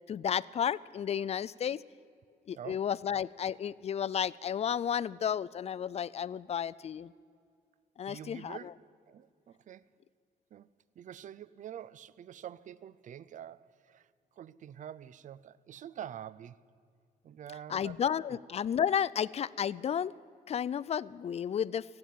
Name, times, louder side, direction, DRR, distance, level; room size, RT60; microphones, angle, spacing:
voice 1, 0.1-1.8 2.5-7.1 8.0-8.6 17.7-20.1 20.5-21.9, left 8 dB, 45° left, 0.4 m, -32 dB
voice 2, 2.5-2.9 8.1-9.8 10.5-10.7 11.0-14.1 14.4-16.6 17.2-18.0 18.3-18.4, right 10 dB, 55° right, 0.5 m, -46 dB
15.0 x 8.7 x 9.1 m
cardioid pair, 80°, 16 cm